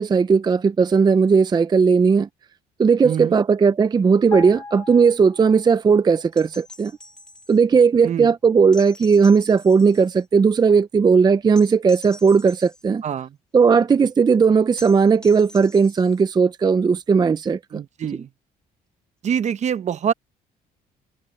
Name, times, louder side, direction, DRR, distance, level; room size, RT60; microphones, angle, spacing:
voice 1, 0.0-2.3 2.8-6.9 7.5-13.0 13.5-17.6, right 5 dB, 25° right, 0.5 m, -17 dB
voice 2, 3.0-3.3 8.0-8.3 13.0-13.4 17.7-18.3 19.2-20.1, right 8 dB, 45° right, 0.9 m, -25 dB
sound 1, 4.3-5.9 6.2-6.4, left 3 dB, 20° left, 4.0 m, -36 dB
sound 2, 6.3-7.6 8.7-10.2 11.5-12.8 14.8-16.2 18.0-18.1, left 2 dB, 5° left, 2.1 m, -44 dB
cardioid pair, 110°, 17 cm